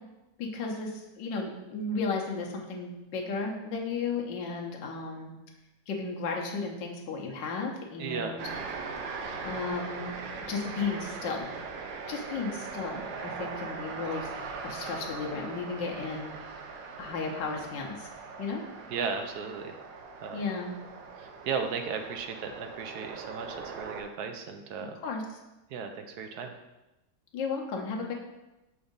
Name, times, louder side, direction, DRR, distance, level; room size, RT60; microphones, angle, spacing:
voice 1, 0.4-5.3 5.9-8.5 9.1-10.2 10.5-11.5 12.1-14.3 14.6-16.3 17.0-18.1 18.4-18.6 20.3-20.8 25.0-25.2 27.3-28.1, left 4 dB, 90° left, 0 dB, 1.5 m, -34 dB
voice 2, 8.0-8.4 18.9-19.8 20.2-20.5 21.2-25.0 25.7-26.5, right 5 dB, 70° right, 5 dB, 1.0 m, -35 dB
sound 1, 8.4-24.0, right 4 dB, 90° right, 1.4 m, -40 dB
6.9 x 2.6 x 5.1 m, 1.0 s
omnidirectional pair, 1.9 m